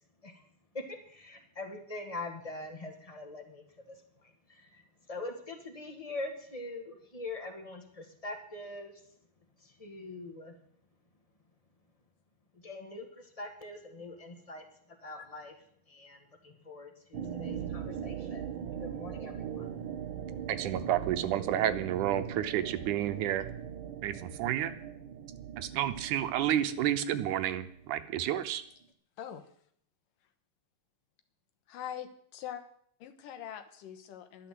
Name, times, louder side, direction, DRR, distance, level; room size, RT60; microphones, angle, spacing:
voice 1, 0.7-9.0 9.6-10.6 12.5-15.5 15.9-19.7, left 2 dB, 20° left, 5 dB, 0.9 m, -43 dB
sound 1, 17.1-28.4, right 8 dB, 55° right, 1.4 m, -40 dB
voice 2, 20.5-23.4 24.0-24.7 25.6-28.6, right 11 dB, 75° right, 11 dB, 2.2 m, -30 dB
voice 3, 31.7-32.6 33.0-34.5, left 10 dB, 85° left, 8 dB, 2.9 m, -43 dB
12.0 x 11.5 x 7.6 m, 0.65 s
omnidirectional pair, 3.8 m